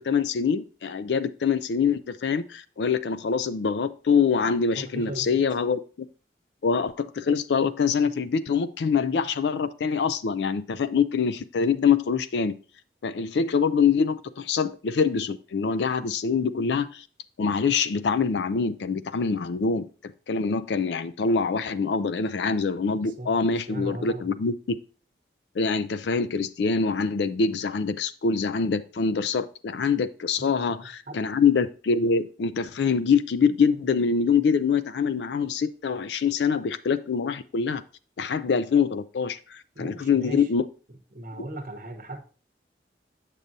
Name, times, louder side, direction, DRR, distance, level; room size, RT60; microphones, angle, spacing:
voice 1, 0.0-5.8 6.6-12.6 13.0-17.0 17.4-19.9 20.3-24.8 25.6-37.8 38.2-40.6, left 5 dB, 85° left, 13 dB, 0.4 m, -24 dB
voice 2, 4.7-5.4 23.0-23.4 23.7-24.3 30.4-30.5 31.1-31.2 39.7-40.5 41.1-42.2, right 1 dB, 50° right, 4 dB, 0.9 m, -37 dB
7.4 x 6.7 x 2.6 m, 0.36 s
head